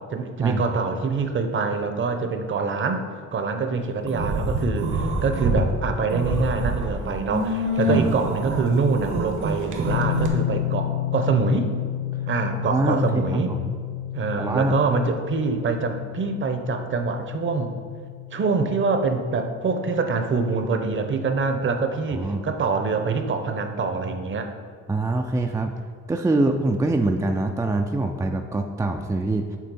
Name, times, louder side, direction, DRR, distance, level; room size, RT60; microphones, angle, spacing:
voice 1, 0.0-3.1 3.3-11.7 12.3-13.6 14.1-17.7 18.3-24.5, right 4 dB, 40° right, 6 dB, 0.8 m, -25 dB
sound 1, 4.1-5.6 6.0-10.3, right 2 dB, 75° right, 1.2 m, -26 dB
sound 2, 9.8-22.8, left 12 dB, 50° left, 0.5 m, -32 dB
voice 2, 12.5-13.6 14.4-14.8 22.1-22.4 24.9-25.7 26.1-29.6, right 2 dB, 10° right, 4 dB, 0.3 m, -24 dB
7.5 x 3.6 x 5.3 m, 2.1 s
cardioid pair, 90°, 30 cm